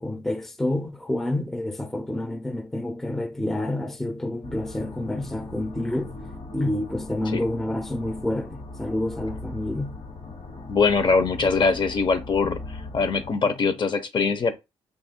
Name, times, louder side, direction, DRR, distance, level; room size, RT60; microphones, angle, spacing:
voice 1, 0.0-6.1 6.5-10.0, left 1 dB, 5° left, 0.5 m, -28 dB
sound 1, 4.4-13.3, left 2 dB, 65° left, 1.1 m, -39 dB
voice 2, 10.7-14.5, left 4 dB, 45° left, 0.6 m, -22 dB
3.1 x 2.4 x 4.3 m
cardioid pair, 115°, 11 cm